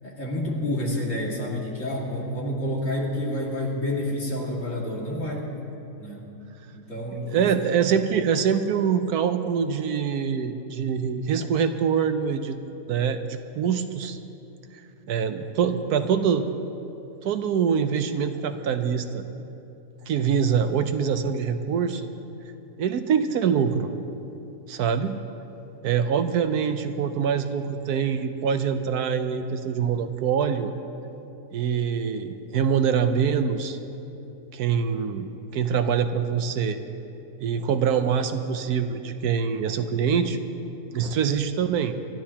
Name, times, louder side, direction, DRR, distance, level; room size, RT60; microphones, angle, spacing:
voice 1, 0.0-5.5 6.0-6.3 6.7-7.5, left 1 dB, 50° left, -3 dB, 2.6 m, -29 dB
voice 2, 7.3-12.6 12.9-14.2 15.1-16.5 17.2-19.2 20.0-22.1 22.8-23.9 24.7-25.2 25.8-30.7 31.5-33.8 34.5-36.8 37.4-40.4 40.9-42.0, right 7 dB, 75° right, 8 dB, 1.2 m, -24 dB
27.0 x 13.0 x 2.9 m, 2.8 s
omnidirectional pair, 1.7 m